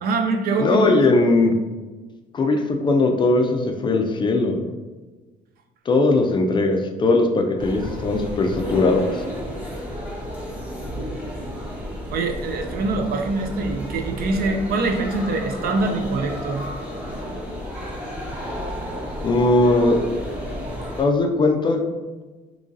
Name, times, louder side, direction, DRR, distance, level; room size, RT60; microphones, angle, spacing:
voice 1, 0.0-1.1 12.1-16.6, right 3 dB, 60° right, 4 dB, 0.5 m, -24 dB
voice 2, 0.6-1.5 2.3-4.6 5.9-9.2 19.2-20.0 21.0-21.8, left 2 dB, 25° left, 4 dB, 0.3 m, -19 dB
sound 1, 7.6-21.0, equal, 80° right, 1.4 m, -32 dB
3.0 x 2.5 x 3.8 m, 1.2 s
cardioid pair, 150°, 18 cm